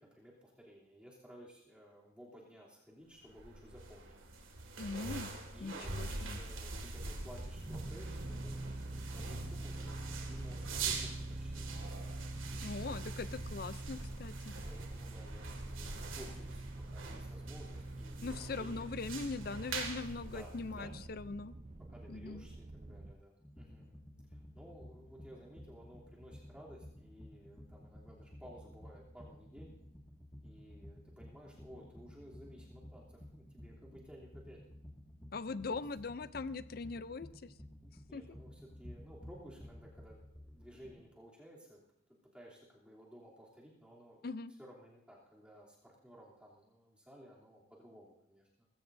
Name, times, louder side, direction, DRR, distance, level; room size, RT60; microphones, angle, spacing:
voice 1, 0.0-4.2 5.5-11.6 14.6-18.9 20.3-20.9 21.9-24.0 24.3-29.7 30.4-34.6 35.7-35.8 38.1-41.8 42.3-44.3 44.6-48.7, equal, 5° right, -5 dB, 3.0 m, -56 dB
sound 1, 3.2-21.1, right 3 dB, 85° right, 2.1 m, -45 dB
voice 2, 4.8-5.3 5.6-6.4 12.6-14.5 18.2-21.5 22.1-22.4 35.3-37.5 38.1-38.2 44.2-44.5, left 4 dB, 50° left, 15 dB, 0.5 m, -41 dB
sound 2, 7.0-23.1, right 1 dB, 35° right, 0.5 m, -45 dB
sound 3, 23.4-41.0, left 1 dB, 15° left, 1.9 m, -54 dB
19.5 x 16.0 x 2.7 m, 0.77 s
head